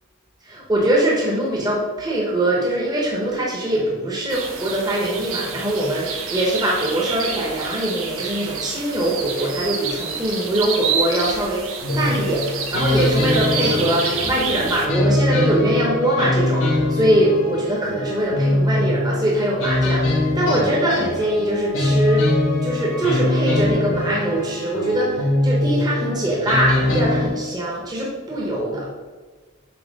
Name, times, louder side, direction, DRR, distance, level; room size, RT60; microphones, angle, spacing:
voice 1, 0.4-28.9, right 1 dB, 20° right, -4 dB, 1.0 m, -22 dB
sound 1, 4.3-14.9, right 5 dB, 80° right, 0.9 m, -28 dB
sound 2, 11.8-27.3, left 1 dB, 85° left, 1.8 m, -22 dB
6.9 x 2.9 x 5.2 m, 1.3 s
head